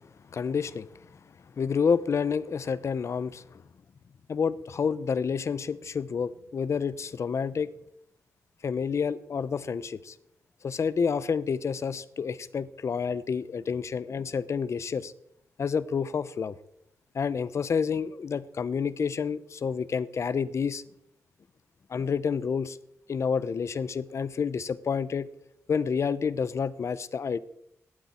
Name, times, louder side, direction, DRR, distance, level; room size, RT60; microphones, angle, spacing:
voice 1, 0.3-0.9 1.6-3.6 4.3-7.7 8.6-10.1 10.6-15.1 15.6-16.5 17.1-20.8 21.9-22.8 23.1-25.3 25.7-27.4, left 6 dB, 60° left, 0.9 m, -29 dB
18.0 x 12.5 x 4.5 m
cardioid pair, 70°, 6 cm